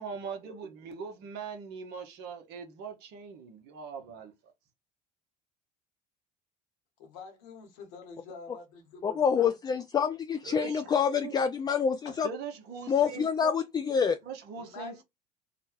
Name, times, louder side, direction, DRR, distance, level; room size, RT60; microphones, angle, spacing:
voice 1, 0.0-4.3 10.4-11.4 12.2-13.6 14.2-15.0, right 5 dB, 60° right, 1.0 m, -41 dB
voice 2, 7.0-9.5 12.0-12.2 14.6-15.0, left 4 dB, 70° left, 1.1 m, -46 dB
voice 3, 9.0-12.3 12.9-14.2, left 7 dB, 20° left, 0.3 m, -27 dB
2.9 x 2.2 x 2.9 m
hypercardioid pair, 70°, 20 cm